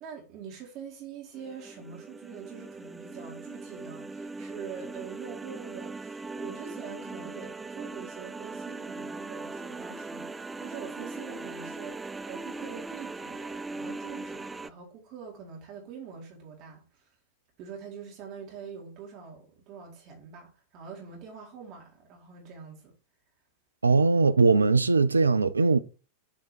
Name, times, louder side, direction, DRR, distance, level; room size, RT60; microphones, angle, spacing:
voice 1, 0.0-17.1 17.6-22.9, right 7 dB, 40° right, 2.1 m, -44 dB
sound 1, 1.3-14.7, right 3 dB, 10° right, 0.3 m, -40 dB
voice 2, 23.8-25.8, right 4 dB, 80° right, 0.5 m, -21 dB
7.5 x 3.6 x 4.4 m
figure-of-eight pair, 90°, 0 cm